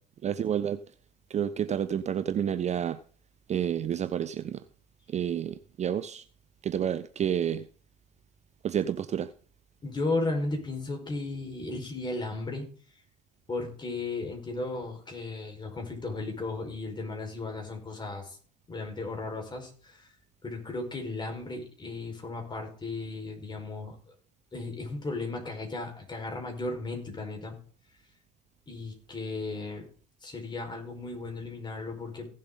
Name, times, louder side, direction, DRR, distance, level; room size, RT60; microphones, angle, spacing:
voice 1, 0.2-0.8 1.3-3.0 3.5-4.6 5.1-6.2 6.6-7.7 8.6-9.3, right 9 dB, 35° right, 0.6 m, -29 dB
voice 2, 9.8-12.6 13.5-18.4 18.7-20.1 20.4-24.1 24.5-27.6 28.7-29.9 30.2-32.3, left 2 dB, 20° left, 4.9 m, -35 dB
17.0 x 7.5 x 3.9 m
hypercardioid pair, 90°, 21 cm